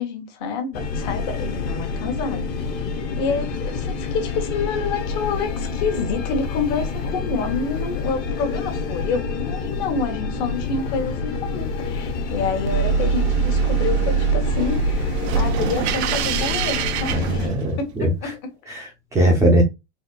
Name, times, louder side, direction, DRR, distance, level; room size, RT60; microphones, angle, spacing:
voice 1, 0.0-2.6 3.2-17.5 17.8-18.7, left 5 dB, 50° left, 1.2 m, -28 dB
sound 1, 0.7-17.5, left 4 dB, 30° left, 0.8 m, -28 dB
sound 2, 12.7-18.0, right 7 dB, 80° right, 0.5 m, -23 dB
voice 2, 17.1-18.3 18.7-19.6, right 1 dB, 10° right, 0.5 m, -20 dB
4.2 x 2.3 x 2.2 m
supercardioid pair, 160°, 33 cm